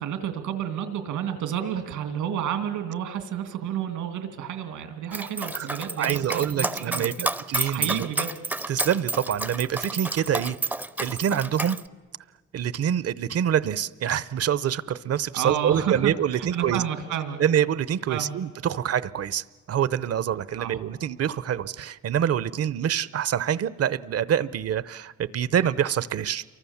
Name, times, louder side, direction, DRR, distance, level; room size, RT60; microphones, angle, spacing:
voice 1, 0.0-7.3 7.7-8.3 15.3-17.4 18.1-18.4 20.6-20.8, right 9 dB, 90° right, 7 dB, 2.7 m, -30 dB
Dog, 5.1-11.8, right 2 dB, 5° right, 0.7 m, -30 dB
voice 2, 6.0-8.1 8.7-10.6 11.0-11.8 12.5-16.8 17.4-26.4, right 9 dB, 55° right, 18 dB, 0.8 m, -26 dB
28.0 x 23.5 x 7.2 m, 1.5 s
cardioid pair, 90°, 30 cm